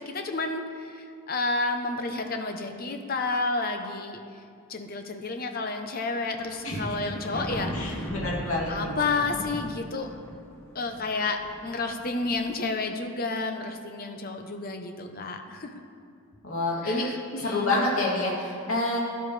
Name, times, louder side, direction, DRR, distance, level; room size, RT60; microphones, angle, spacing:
voice 1, 0.0-4.2 4.7-8.1 8.7-10.1 10.7-15.7 16.8-17.7, left 3 dB, 40° left, 5 dB, 0.8 m, -31 dB
sound 1, 6.2-12.4, equal, 10° left, 1.6 m, -38 dB
voice 2, 7.7-8.9 16.4-17.1 17.4-19.0, left 2 dB, 70° left, -4 dB, 2.8 m, -27 dB
16.0 x 11.0 x 3.3 m, 2.4 s
head